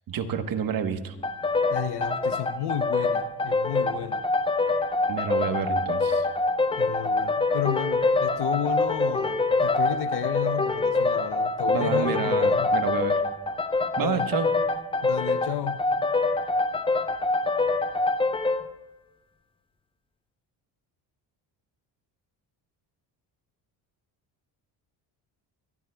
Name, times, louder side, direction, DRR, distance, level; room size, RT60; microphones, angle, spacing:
voice 1, 0.1-1.1 5.1-6.3 11.7-13.2 14.0-14.5, right 7 dB, 50° right, 1.2 m, -29 dB
sound 1, 1.2-18.7, left 3 dB, 10° left, 0.6 m, -25 dB
voice 2, 1.7-4.2 6.8-12.8 14.0-14.3 15.0-15.9, left 11 dB, 65° left, 0.8 m, -32 dB
23.5 x 13.5 x 2.3 m
cardioid pair, 105°, 44 cm